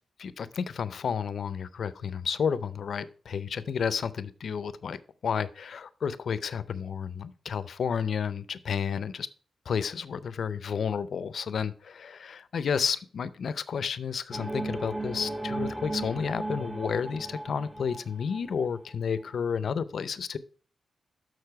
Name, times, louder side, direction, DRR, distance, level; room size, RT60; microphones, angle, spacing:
voice 1, 0.2-9.3 9.7-20.4, left 6 dB, 65° left, 0.5 m, -31 dB
sound 1, 14.3-18.8, right 2 dB, 15° right, 0.7 m, -36 dB
6.7 x 6.2 x 4.6 m
wide cardioid pair, 115°, 0 cm